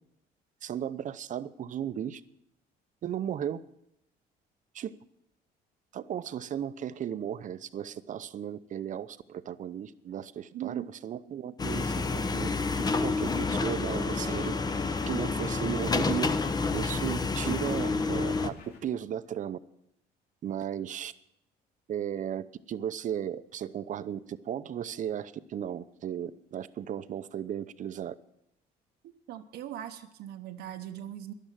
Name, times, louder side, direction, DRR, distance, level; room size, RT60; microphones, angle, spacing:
voice 1, 0.6-2.2 3.0-3.6 4.7-4.9 5.9-14.5 15.1-16.3 16.7-19.6 20.4-21.1 21.9-28.2, right 9 dB, 50° right, 13 dB, 0.7 m, -35 dB
voice 2, 10.5-10.9 29.3-31.3, right 11 dB, 75° right, 5 dB, 1.0 m, -40 dB
sound 1, 11.6-18.5, left 3 dB, 25° left, 0.8 m, -29 dB
sound 2, 13.7-18.8, left 4 dB, 70° left, 3.1 m, -48 dB
12.0 x 11.5 x 7.5 m, 0.80 s
cardioid pair, 110°, 17 cm